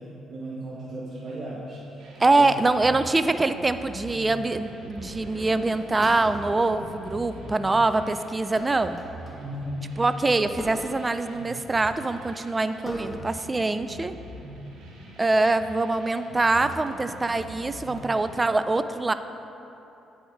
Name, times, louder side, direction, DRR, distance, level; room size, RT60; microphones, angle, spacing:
voice 1, 0.0-2.5 9.4-9.9, right 1 dB, 40° right, -8 dB, 1.3 m, -36 dB
sound 1, 2.0-18.4, right 2 dB, 85° right, 1.1 m, -44 dB
voice 2, 2.2-9.0 10.0-14.1 15.2-19.1, right 2 dB, 20° right, 11 dB, 0.3 m, -24 dB
sound 2, 3.6-4.0 6.0-6.8 7.3-7.7 8.5-9.7 10.6-11.4 11.7-12.0 12.8-13.4 13.8-14.0 15.7-15.9 16.4-18.1, equal, 20° left, 1.1 m, -43 dB
sound 3, 4.9-14.6 15.0-15.5, left 1 dB, 60° left, 1.2 m, -46 dB
9.1 x 4.3 x 4.6 m, 3.0 s
cardioid pair, 90°, 0 cm